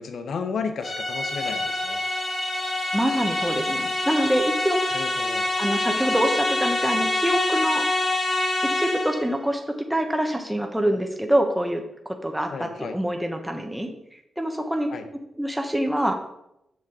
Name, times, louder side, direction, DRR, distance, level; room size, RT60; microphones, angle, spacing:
voice 1, 0.0-2.0 4.9-5.4 12.5-13.0 14.9-15.0, left 5 dB, 70° left, 8 dB, 0.9 m, -32 dB
sound 1, 0.8-9.3, left 2 dB, 30° left, 2.3 m, -26 dB
voice 2, 2.9-4.9 5.6-7.9 8.6-13.9 14.4-14.9 15.4-16.1, right 1 dB, 5° right, 4 dB, 1.3 m, -25 dB
7.3 x 6.1 x 5.0 m, 0.83 s
cardioid pair, 75°, 0 cm